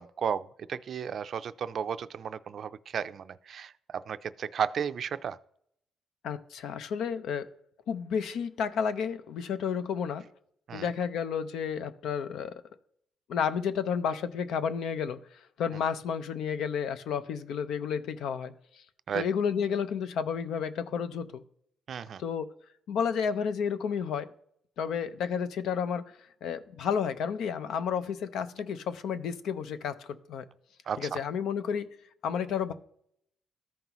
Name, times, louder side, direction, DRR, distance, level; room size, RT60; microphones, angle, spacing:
voice 1, 0.0-5.4 10.7-10.9 19.1-19.2 21.9-22.2 30.9-31.2, right 7 dB, 55° right, 14 dB, 0.4 m, -34 dB
voice 2, 6.2-7.5 7.9-10.3 10.7-12.5 13.3-15.2 15.6-18.5 19.1-21.4 22.2-22.5 22.9-24.3 24.8-26.0 26.4-30.4 31.0-31.9 32.2-32.7, left 7 dB, 75° left, 12 dB, 0.6 m, -31 dB
13.5 x 5.4 x 3.0 m, 0.68 s
cardioid pair, 90°, 0 cm